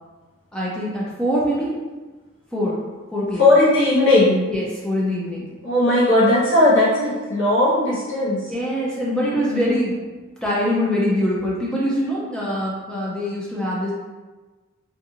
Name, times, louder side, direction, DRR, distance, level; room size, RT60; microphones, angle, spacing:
voice 1, 0.5-1.7 2.5-2.8 3.1-3.5 4.5-5.5 8.5-10.0 10.4-13.9, equal, 5° left, -7 dB, 0.4 m, -23 dB
voice 2, 3.4-4.5 5.6-8.5, left 1 dB, 60° left, -8 dB, 0.9 m, -17 dB
2.6 x 2.5 x 2.7 m, 1.3 s
head